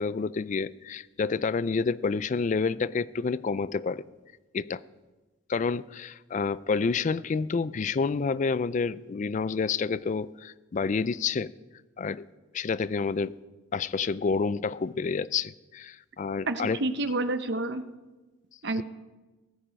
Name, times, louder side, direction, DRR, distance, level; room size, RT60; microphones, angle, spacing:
voice 1, 0.0-4.0 4.5-4.8 5.5-11.5 12.0-12.2 12.5-13.3 13.7-16.8, left 5 dB, 35° left, 0.3 m, -29 dB
voice 2, 16.5-17.8 18.6-18.8, right 2 dB, 55° right, 0.8 m, -29 dB
19.0 x 8.9 x 5.2 m
head